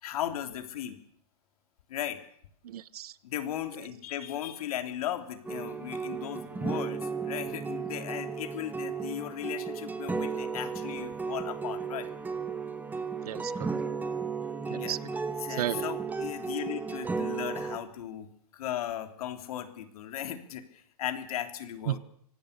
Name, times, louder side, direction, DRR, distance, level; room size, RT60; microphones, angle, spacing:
voice 1, 0.0-1.0 1.9-2.2 3.2-12.1 14.7-15.0 15.4-18.3 18.5-22.0, left 11 dB, 65° left, 7 dB, 3.3 m, -37 dB
voice 2, 2.6-3.1 13.2-13.8 14.7-15.0 15.5-15.9 21.9-22.0, right 12 dB, 75° right, 20 dB, 1.0 m, -33 dB
sound 1, 5.4-17.8, right 5 dB, 10° right, 1.6 m, -34 dB
25.0 x 18.5 x 6.8 m, 0.63 s
hypercardioid pair, 140°, 20 cm